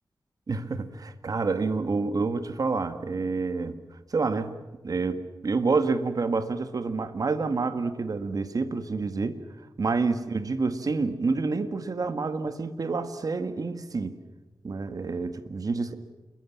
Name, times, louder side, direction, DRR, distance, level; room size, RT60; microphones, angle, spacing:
voice 1, 0.5-3.8 4.1-4.6 4.8-9.4 9.8-14.2 14.6-16.0, right 4 dB, 55° right, 10 dB, 1.8 m, -28 dB
28.5 x 22.0 x 7.4 m, 1.2 s
wide cardioid pair, 105°, 8 cm